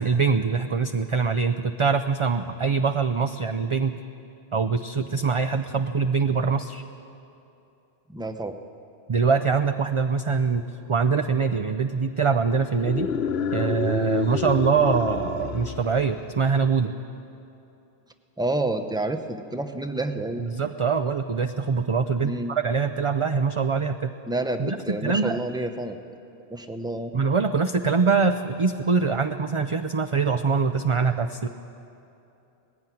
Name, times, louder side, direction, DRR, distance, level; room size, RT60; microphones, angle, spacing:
voice 1, 0.0-4.0 4.5-6.8 9.1-10.6 10.9-13.1 13.5-16.9 20.4-24.1 24.6-25.4 27.1-31.5, right 5 dB, 40° right, 8 dB, 0.4 m, -23 dB
voice 2, 8.1-8.6 18.4-20.4 22.2-22.5 24.3-26.0 26.5-27.1, right 2 dB, 5° right, 7 dB, 0.8 m, -29 dB
sound 1, 12.7-16.4, left 6 dB, 70° left, 1.0 m, -29 dB
19.0 x 15.5 x 9.1 m, 2.8 s
omnidirectional pair, 1.1 m